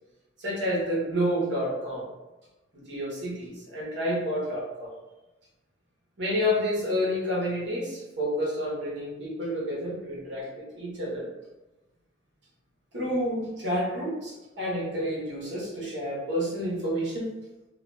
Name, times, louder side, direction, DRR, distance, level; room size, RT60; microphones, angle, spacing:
voice 1, 0.4-2.1 2.7-4.9 6.2-11.3 12.9-17.3, equal, 60° right, -6 dB, 1.0 m, -29 dB
2.7 x 2.3 x 2.3 m, 1.0 s
head